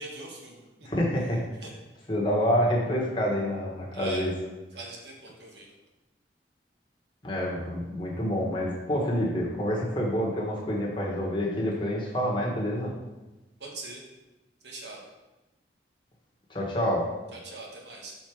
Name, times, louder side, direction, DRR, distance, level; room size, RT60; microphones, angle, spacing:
voice 1, 0.0-0.9 1.6-1.7 3.9-4.3 4.7-5.7 13.6-14.0 14.6-15.1 17.3-18.2, right 2 dB, 75° right, -1 dB, 1.3 m, -41 dB
voice 2, 0.8-1.4 2.1-4.3 7.2-12.9 16.5-17.1, equal, 25° left, -3 dB, 1.3 m, -27 dB
6.2 x 4.1 x 4.7 m, 1.1 s
head